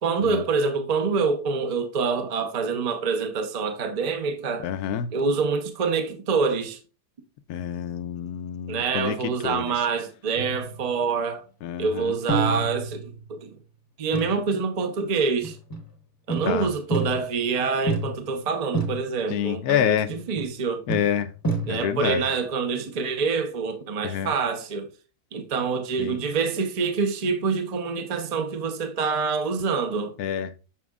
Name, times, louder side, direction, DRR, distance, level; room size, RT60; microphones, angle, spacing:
voice 1, 0.0-4.6 5.1-6.8 8.7-11.4 11.8-13.5 14.0-15.6 16.3-20.8 21.7-24.9 25.3-30.1, right 5 dB, 40° right, 0.6 m, -26 dB
voice 2, 4.6-5.1 7.5-9.8 11.6-12.2 16.4-16.7 19.3-20.1 20.9-21.3 21.7-22.3 24.0-24.3 26.0-26.2 30.2-30.5, left 9 dB, 75° left, 1.1 m, -27 dB
sound 1, 10.3-11.2 12.3-13.5 14.1-14.5 15.4-15.9 16.3-17.5 17.9-18.4 18.7-19.3 20.1-20.6 20.9-22.1, right 3 dB, 15° left, 0.8 m, -29 dB
7.2 x 5.9 x 2.4 m
omnidirectional pair, 1.7 m